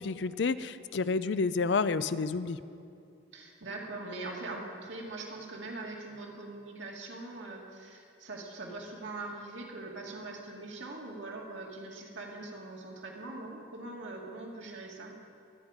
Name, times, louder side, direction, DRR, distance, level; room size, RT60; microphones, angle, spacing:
voice 1, 0.0-2.6, left 4 dB, 70° left, 14 dB, 0.4 m, -29 dB
voice 2, 3.3-15.1, right 2 dB, 85° right, -1 dB, 2.3 m, -42 dB
23.0 x 9.0 x 5.0 m, 2.5 s
head